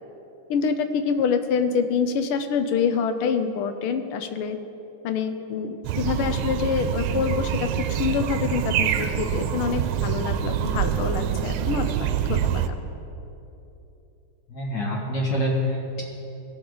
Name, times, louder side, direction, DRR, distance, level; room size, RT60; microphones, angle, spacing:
voice 1, 0.5-4.6 5.0-12.6, left 6 dB, 90° left, 8 dB, 1.6 m, -26 dB
sound 1, 5.8-12.7, right 9 dB, 85° right, 1.5 m, -25 dB
voice 2, 14.5-16.0, left 1 dB, 60° left, -2 dB, 2.3 m, -26 dB
17.0 x 7.1 x 3.9 m, 2.9 s
omnidirectional pair, 2.3 m